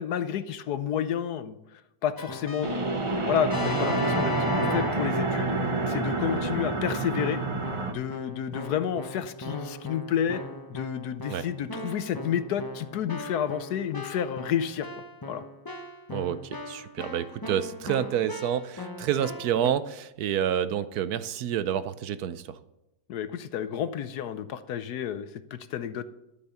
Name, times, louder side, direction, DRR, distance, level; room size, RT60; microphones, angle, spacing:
voice 1, 0.0-1.6 2.0-2.7 3.1-5.5 5.9-7.4 7.9-10.4 10.7-14.9 15.2-15.4 23.1-26.0, left 9 dB, 65° left, 12 dB, 1.1 m, -30 dB
Keyboard (musical), 2.2-5.8 6.3-6.8 7.2-19.7, left 1 dB, 25° left, 0.5 m, -37 dB
sound 1, 2.6-7.9, right 3 dB, 25° right, 0.6 m, -28 dB
voice 2, 16.1-22.6, right 9 dB, 65° right, 14 dB, 1.0 m, -29 dB
12.0 x 8.4 x 6.9 m, 0.91 s
omnidirectional pair, 2.0 m